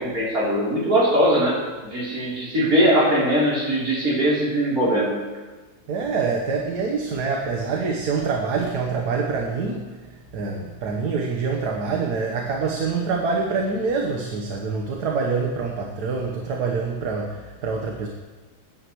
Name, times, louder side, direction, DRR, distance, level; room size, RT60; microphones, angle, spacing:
voice 1, 0.0-5.1, equal, 65° right, -6 dB, 4.1 m, -21 dB
voice 2, 5.9-9.9 10.3-18.1, right 4 dB, 80° right, 1 dB, 1.7 m, -25 dB
21.0 x 10.5 x 3.1 m, 1.3 s
omnidirectional pair, 1.7 m